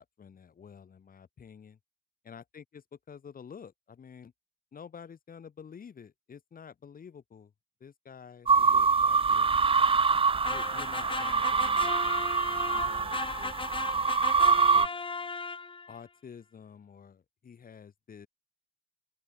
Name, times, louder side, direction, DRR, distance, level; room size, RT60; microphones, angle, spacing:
voice 1, 0.0-1.8 2.2-2.8 3.1-4.3 4.7-7.5 7.8-9.5 10.5-12.3 12.7-14.2 14.7-14.9 15.9-18.3, left 7 dB, 45° left, 3.6 m, -50 dB
sound 1, 8.5-14.9, right 5 dB, 25° right, 0.8 m, -25 dB
sound 2, 10.4-16.0, left 4 dB, 25° left, 1.2 m, -37 dB
open air
cardioid pair, 90°, 20 cm